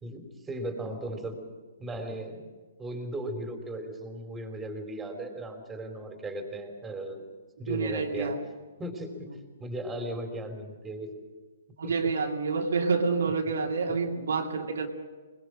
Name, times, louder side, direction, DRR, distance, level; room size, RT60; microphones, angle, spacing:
voice 1, 0.0-1.4 1.8-2.4 2.8-7.2 7.6-8.4 8.8-9.3 9.6-11.1 11.8-12.1 13.9-14.0, right 1 dB, 10° right, 4 dB, 3.6 m, -37 dB
voice 2, 7.7-8.4 11.8-14.9, right 4 dB, 80° right, 1 dB, 2.7 m, -28 dB
22.5 x 21.0 x 6.4 m, 1.3 s
hypercardioid pair, 140°, 0 cm